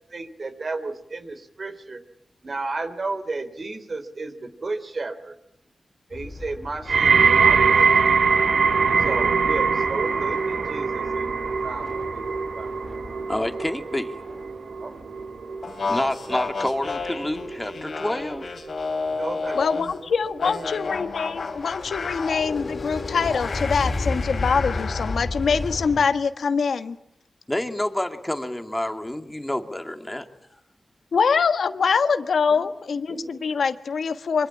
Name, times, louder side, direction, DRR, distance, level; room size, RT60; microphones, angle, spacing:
voice 1, 0.0-2.0 2.4-5.4 6.1-8.0 9.0-11.3 11.6-12.7 14.8-14.9 19.2-20.1 20.3-20.8 22.0-22.1 32.5-32.7 33.1-33.6, right 3 dB, 50° right, 10 dB, 3.3 m, -33 dB
sound 1, 6.1-18.4 18.8-19.1 19.4-26.0, left 2 dB, 50° left, 3.5 m, -35 dB
sound 2, 6.9-18.0 18.3-18.8 19.6-19.7, right 5 dB, 75° right, 1.1 m, -22 dB
voice 2, 13.3-14.1 15.9-18.5 27.5-30.3, left 1 dB, 15° left, 6 dB, 2.4 m, -28 dB
sound 3, 15.6-20.0 20.4-25.2, left 4 dB, 70° left, 3.2 m, -31 dB
voice 3, 19.5-26.9 31.1-34.5, left 5 dB, 85° left, 9 dB, 1.5 m, -24 dB
25.5 x 24.5 x 8.7 m, 0.75 s
wide cardioid pair, 80°, 0 cm